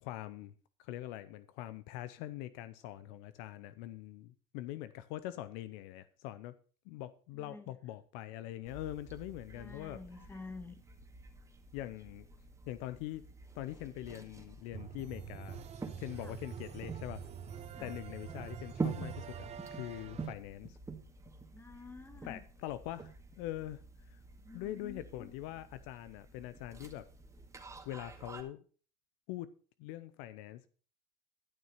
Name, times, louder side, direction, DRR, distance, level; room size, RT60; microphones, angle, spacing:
voice 1, 0.0-0.5 0.8-6.5 6.9-10.0 11.7-12.3 12.7-13.2 13.5-15.6 16.0-17.2 17.8-20.8 22.2-24.2 24.5-27.1 27.9-28.6 29.3-29.5 29.8-30.7, left 14 dB, 65° left, 15 dB, 0.7 m, -43 dB
voice 2, 7.3-7.7 9.5-10.8 16.2-16.4 17.7-17.9 21.5-22.4 24.4-25.3, left 3 dB, 10° left, 10 dB, 1.6 m, -50 dB
sound 1, 8.7-28.4, right 4 dB, 15° right, 2.0 m, -47 dB
sound 2, 14.7-20.3, right 7 dB, 35° right, 1.0 m, -46 dB
12.0 x 6.5 x 5.6 m, 0.40 s
supercardioid pair, 95°, 19 cm